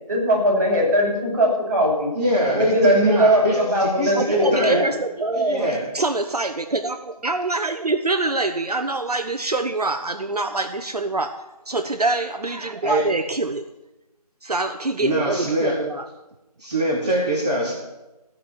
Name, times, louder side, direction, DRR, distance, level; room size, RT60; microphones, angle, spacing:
voice 1, 0.1-2.1 2.6-4.8, equal, 30° right, -6 dB, 6.0 m, -19 dB
voice 2, 2.1-4.8 5.3-5.8 12.8-13.1 15.0-15.8 16.6-17.7, equal, 10° right, -11 dB, 1.0 m, -23 dB
voice 3, 4.1-5.7 5.9-13.6 14.4-16.1, right 2 dB, 70° right, 7 dB, 0.9 m, -25 dB
15.5 x 5.4 x 9.1 m, 1.0 s
figure-of-eight pair, 170°, 20 cm